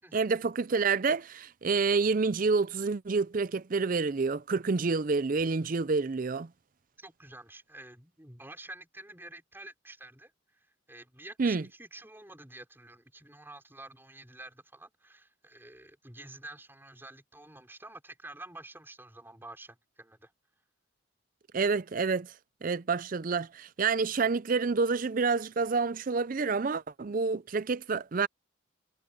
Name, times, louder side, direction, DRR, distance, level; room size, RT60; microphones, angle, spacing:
voice 1, 0.1-6.5 11.4-11.6 21.5-22.3 22.6-28.3, right 4 dB, 40° right, 0.5 m, -28 dB
voice 2, 7.0-20.3, right 2 dB, 10° right, 5.3 m, -49 dB
head